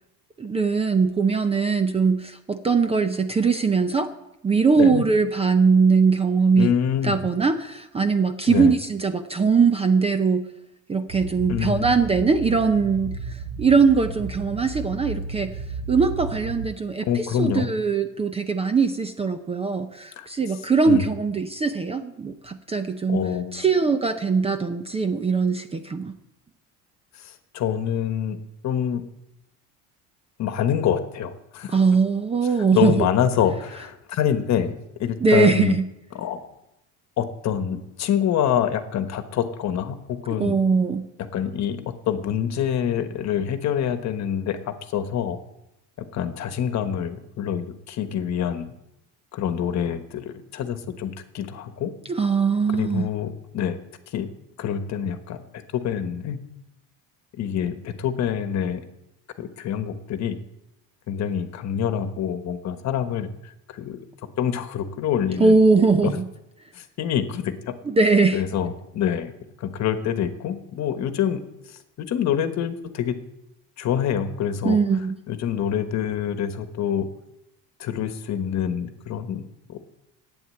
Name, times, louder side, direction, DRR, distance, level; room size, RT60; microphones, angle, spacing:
voice 1, 0.4-4.1 4.4-6.7 7.0-10.5 10.9-15.5 15.9-23.3 23.5-26.2 31.7-33.1 35.2-35.9 40.4-41.1 52.1-53.1 65.4-66.3 67.9-68.4 74.6-75.2, right 4 dB, 15° right, 9 dB, 0.6 m, -21 dB
voice 2, 6.5-7.2 8.5-8.7 11.5-11.9 17.1-17.7 20.2-20.3 20.9-21.0 23.1-23.6 27.2-28.4 28.6-29.0 30.4-31.8 32.7-35.8 36.1-36.4 37.2-40.6 41.3-41.8 42.1-45.4 46.0-48.7 49.3-51.9 52.7-53.8 54.1-54.3 54.6-56.4 57.4-58.8 59.4-60.4 61.1-63.3 63.7-64.0 64.4-65.6 66.0-66.1 66.7-67.7 68.3-69.3 69.6-71.4 72.0-73.1 73.8-74.8 75.3-77.1 77.8-79.4 79.7-79.8, left 9 dB, 50° left, 9 dB, 1.3 m, -26 dB
sound 1, 11.1-16.7, right 5 dB, 45° right, 0.9 m, -34 dB
11.5 x 9.0 x 7.6 m, 0.87 s
cardioid pair, 145°, 36 cm